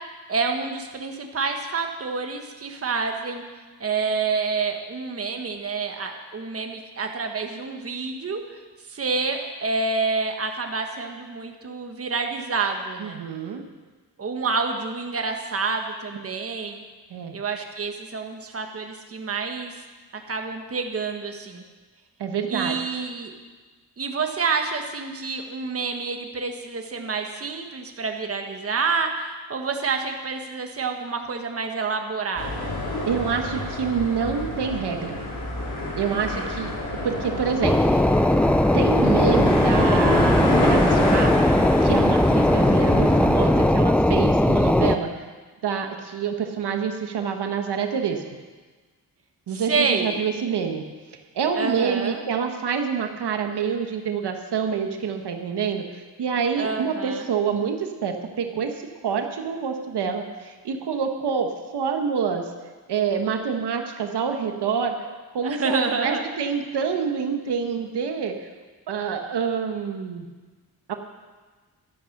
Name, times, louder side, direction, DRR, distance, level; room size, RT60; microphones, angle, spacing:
voice 1, 0.3-3.4 3.8-8.6 8.9-13.2 14.2-16.8 17.3-19.7 20.3-21.6 22.5-23.3 24.0-32.7 36.1-36.5 49.5-50.2 51.5-52.2 56.6-57.3 65.4-66.2, right 4 dB, 35° right, 4 dB, 1.3 m, -28 dB
voice 2, 13.0-13.6 17.1-17.4 22.2-22.8 33.1-35.2 36.0-36.7 37.0-38.0 38.7-41.4 41.8-45.1 45.6-48.2 49.5-50.8 51.3-62.5 62.9-65.0 65.3-68.5 68.9-70.3 70.9-71.0, right 6 dB, 85° right, 5 dB, 1.3 m, -27 dB
sound 1, 32.4-43.7, left 1 dB, 80° left, 4.0 m, -29 dB
sound 2, 37.6-45.0, left 1 dB, 5° left, 0.3 m, -19 dB
12.5 x 10.5 x 6.5 m, 1.3 s
wide cardioid pair, 135°, 39 cm